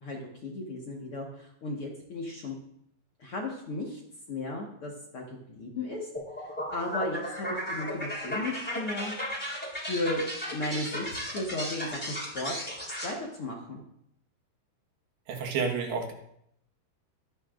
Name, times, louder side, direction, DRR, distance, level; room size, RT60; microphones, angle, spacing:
voice 1, 0.0-2.5 3.2-4.0 4.3-6.0 6.7-9.1 9.8-10.2 10.5-12.7 13.0-13.8, left 2 dB, 50° left, -2 dB, 1.8 m, -35 dB
sound 1, 6.1-13.1, equal, 5° left, 3.0 m, -35 dB
voice 2, 15.3-16.1, right 5 dB, 85° right, 3 dB, 3.6 m, -30 dB
23.0 x 9.8 x 2.6 m, 0.74 s
omnidirectional pair, 4.5 m